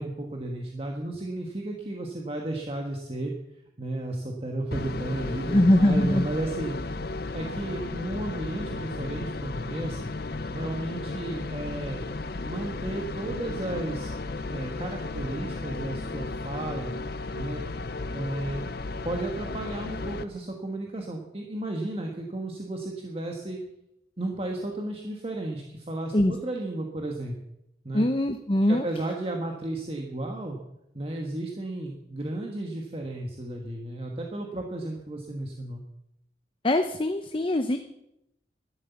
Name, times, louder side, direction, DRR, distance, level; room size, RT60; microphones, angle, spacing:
voice 1, 0.0-3.3 3.8-6.8 7.3-10.1 10.5-12.1 12.5-14.1 14.5-16.9 17.3-17.6 18.1-18.7 19.0-23.6 24.2-27.4 27.8-28.1 28.7-30.6 30.9-35.8, right 1 dB, 35° right, 1 dB, 1.5 m, -33 dB
sound 1, 4.7-20.2, left 3 dB, 60° left, 0.7 m, -34 dB
voice 2, 5.5-6.3 26.1-26.3 27.9-28.8 36.6-37.8, left 1 dB, 30° left, 7 dB, 0.8 m, -22 dB
12.5 x 12.0 x 7.1 m, 0.84 s
head